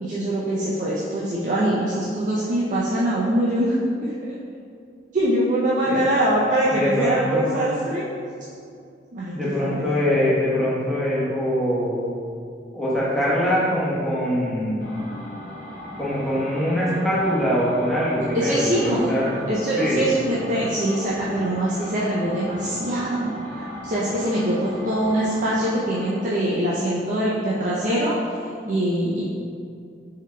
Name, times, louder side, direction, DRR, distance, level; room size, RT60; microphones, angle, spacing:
voice 1, 0.0-3.8 4.0-4.1 5.1-8.1 9.1-9.8 18.3-19.1 19.5-28.4 28.7-29.2, right 1 dB, 45° right, -7 dB, 0.5 m, -23 dB
voice 2, 6.7-7.5 9.3-12.0 12.7-14.9 16.0-19.3 19.8-20.1, equal, ahead, -8 dB, 1.0 m, -23 dB
sound 1, 14.8-26.3, left 1 dB, 50° left, 0.9 m, -37 dB
6.1 x 3.8 x 2.2 m, 2.4 s
head